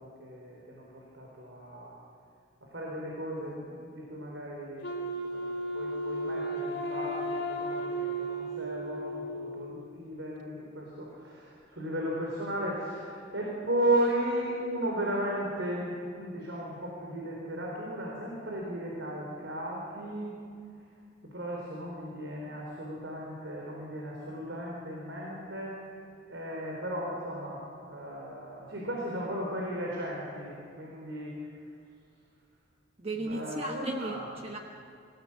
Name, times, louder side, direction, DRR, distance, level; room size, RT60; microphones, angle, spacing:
voice 1, 0.0-2.0 2.6-20.4 21.3-25.8 26.3-31.6 33.2-34.3, right 1 dB, 75° right, -3 dB, 4.3 m, -35 dB
Wind instrument woodwind instrument, 4.8-9.8, right 1 dB, 75° left, 2.6 m, -34 dB
voice 2, 33.0-34.6, right 2 dB, 30° right, 2 dB, 1.2 m, -35 dB
26.5 x 16.5 x 7.5 m, 2.3 s
head